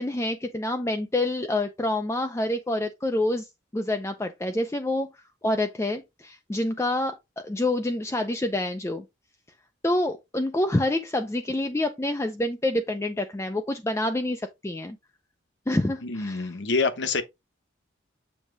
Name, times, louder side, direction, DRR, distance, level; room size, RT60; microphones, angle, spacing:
voice 1, 0.0-3.5 3.7-5.1 5.4-9.0 9.8-15.0 15.7-16.5, left 1 dB, 15° left, 0.4 m, -27 dB
voice 2, 16.0-17.2, left 4 dB, 60° left, 0.9 m, -26 dB
7.2 x 2.8 x 4.7 m
head